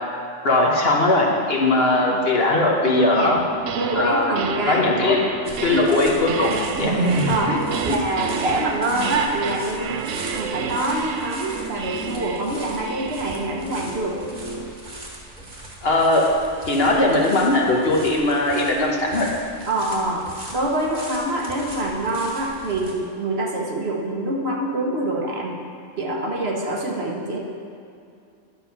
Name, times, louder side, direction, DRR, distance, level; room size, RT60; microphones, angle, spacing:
voice 1, 0.4-3.4 3.9-4.3 4.7-5.2 5.6-6.9 7.5-7.6 7.9-8.0 15.8-16.2 16.7-19.3, left 2 dB, 50° left, -1 dB, 1.3 m, -19 dB
voice 2, 2.9-3.4 3.7-5.2 5.7-5.9 7.3-14.2 19.7-20.3 20.5-25.6 26.0-27.4, right 1 dB, 55° right, 0 dB, 1.2 m, -25 dB
sound 1, 3.4-4.1 4.4-14.8, right 6 dB, 75° right, 0.9 m, -31 dB
sound 2, 5.4-22.9, right 1 dB, 40° right, 1.5 m, -34 dB
10.0 x 5.9 x 5.7 m, 2.5 s
omnidirectional pair, 1.3 m